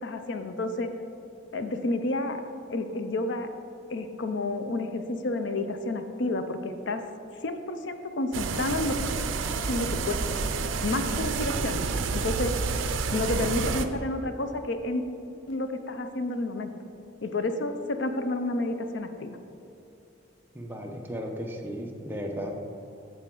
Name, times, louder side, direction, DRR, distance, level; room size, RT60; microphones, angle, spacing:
voice 1, 0.0-0.9 1.5-2.4 2.7-3.5 3.9-7.0 7.4-9.0 9.7-10.4 10.8-11.8 12.1-12.5 13.1-15.0 15.5-16.7 17.2-19.4, left 2 dB, 65° left, 8 dB, 0.5 m, -30 dB
sound 1, 8.3-13.9, right 4 dB, 80° right, 0.5 m, -29 dB
voice 2, 20.5-22.6, equal, 10° right, 0 dB, 0.7 m, -35 dB
9.0 x 6.5 x 3.8 m, 2.8 s
head